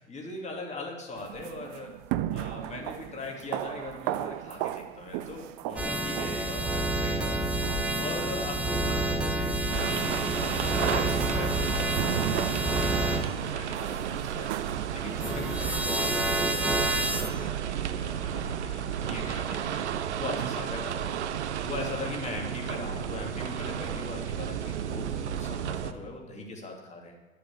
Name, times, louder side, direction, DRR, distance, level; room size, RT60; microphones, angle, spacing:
voice 1, 0.0-1.9 2.3-7.5 8.0-21.2 21.6-27.1, left 2 dB, 20° left, 0 dB, 2.9 m, -40 dB
sound 1, 1.2-16.0, right 13 dB, 45° right, 0.6 m, -37 dB
sound 2, 5.8-13.2 15.2-17.3, right 1 dB, 5° right, 1.4 m, -29 dB
sound 3, 9.7-25.9, right 9 dB, 75° right, 0.8 m, -33 dB
11.0 x 6.8 x 8.7 m, 1.2 s
figure-of-eight pair, 90°, 35 cm